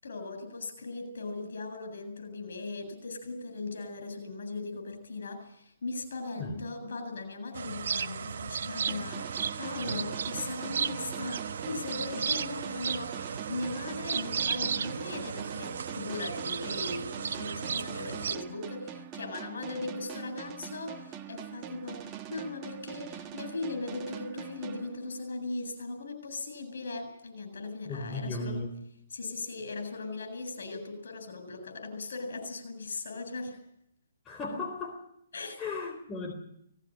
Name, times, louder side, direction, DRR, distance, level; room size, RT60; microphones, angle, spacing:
voice 1, 0.0-28.6 29.1-33.6 35.3-35.6, left 3 dB, 70° left, 7 dB, 8.0 m, -38 dB
sound 1, 7.5-18.4, right 7 dB, 65° right, 1.1 m, -34 dB
sound 2, 8.9-25.5, right 9 dB, 25° right, 1.5 m, -44 dB
voice 2, 27.8-28.8 34.2-35.1 35.6-36.3, left 3 dB, 15° left, 1 dB, 3.8 m, -36 dB
19.0 x 17.0 x 9.0 m, 0.74 s
hypercardioid pair, 145°, 0 cm